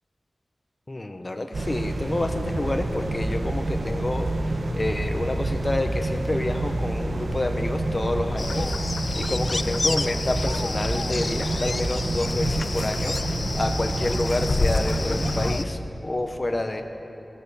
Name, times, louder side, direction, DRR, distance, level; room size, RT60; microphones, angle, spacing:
voice 1, 0.9-16.8, left 2 dB, 35° left, 5 dB, 0.9 m, -29 dB
sound 1, 1.5-15.6, right 2 dB, 65° right, 1.2 m, -28 dB
sound 2, 8.4-15.6, left 3 dB, 50° left, 0.3 m, -29 dB
17.0 x 11.0 x 7.0 m, 2.9 s
wide cardioid pair, 65°, 0 cm